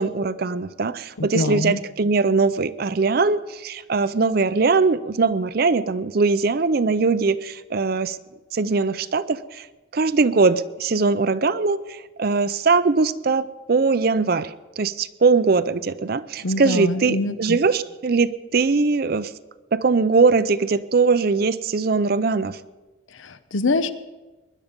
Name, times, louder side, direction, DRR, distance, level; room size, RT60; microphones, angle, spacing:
voice 1, 0.0-8.2 8.5-9.7 9.9-19.3 19.7-22.6, right 4 dB, 50° right, 14 dB, 0.5 m, -21 dB
voice 2, 1.2-1.8 16.4-17.6 23.2-23.9, left 2 dB, 80° left, 13 dB, 0.8 m, -24 dB
21.0 x 11.0 x 5.3 m, 1.2 s
head